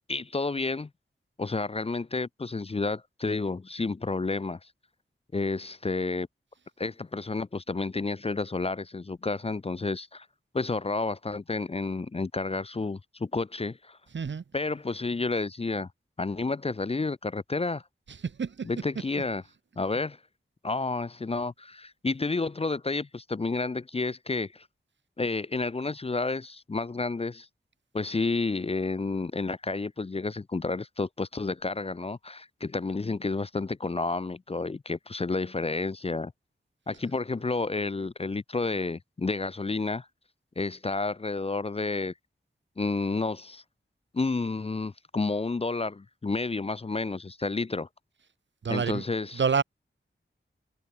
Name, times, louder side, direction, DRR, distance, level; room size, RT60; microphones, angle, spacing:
voice 1, 0.1-0.9 1.4-4.6 5.3-6.3 6.8-10.3 10.5-14.0 14.5-15.9 16.2-17.8 18.6-19.4 19.8-20.2 20.6-24.7 25.2-27.5 27.9-36.3 36.9-40.1 40.6-42.1 42.8-43.6 44.1-47.9 48.7-49.4, left 3 dB, 30° left, 0.5 m, -30 dB
voice 2, 18.2-18.7 48.6-49.0 49.3-49.6, right 6 dB, 60° right, 0.7 m, -27 dB
cardioid pair, 45°, 21 cm